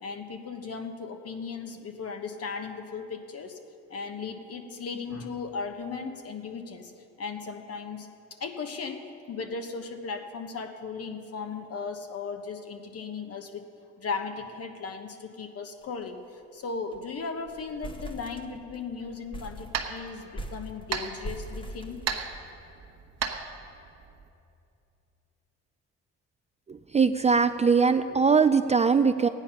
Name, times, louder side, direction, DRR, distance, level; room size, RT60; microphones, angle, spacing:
voice 1, 0.0-3.6 3.9-6.9 7.2-13.6 14.0-22.0, left 5 dB, 55° left, 6 dB, 1.2 m, -37 dB
sound 1, 15.8-16.0 16.3-16.4 16.7-17.1 17.5-18.9 19.3-22.6, right 1 dB, 15° left, 0.9 m, -41 dB
sound 2, 19.0-24.3, right 6 dB, 60° right, 1.1 m, -37 dB
voice 2, 26.7-29.3, right 5 dB, 25° right, 10 dB, 0.4 m, -21 dB
15.0 x 9.6 x 5.7 m, 2.7 s
cardioid pair, 90°, 30 cm